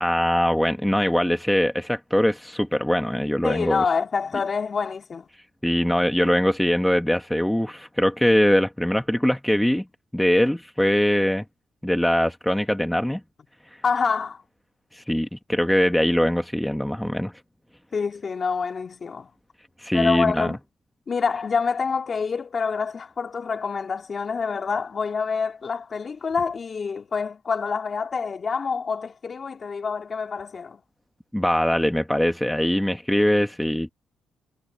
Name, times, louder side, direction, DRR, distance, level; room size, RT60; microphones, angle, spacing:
voice 1, 0.0-3.8 5.6-9.9 10.1-11.4 11.8-13.2 14.9-17.3 19.8-20.6 31.3-33.9, equal, 5° left, 1.4 m, -22 dB
voice 2, 3.4-5.2 13.8-14.4 17.9-19.3 19.9-20.6 21.1-30.8, left 5 dB, 40° left, 2.3 m, -27 dB
cardioid pair, 90°, 0 cm